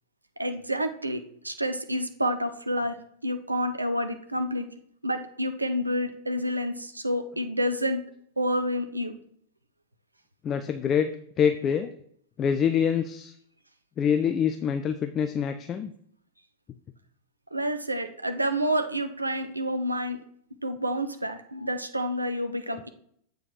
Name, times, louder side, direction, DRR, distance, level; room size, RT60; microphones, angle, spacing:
voice 1, 0.4-3.0 3.2-4.7 5.0-8.0 8.4-9.1 17.5-20.2 20.6-22.9, equal, 85° right, 8 dB, 0.6 m, -29 dB
voice 2, 10.4-11.9 12.4-13.3 14.0-15.9, left 7 dB, 30° left, 9 dB, 0.4 m, -25 dB
7.6 x 4.6 x 4.7 m, 0.65 s
figure-of-eight pair, 90°, 0 cm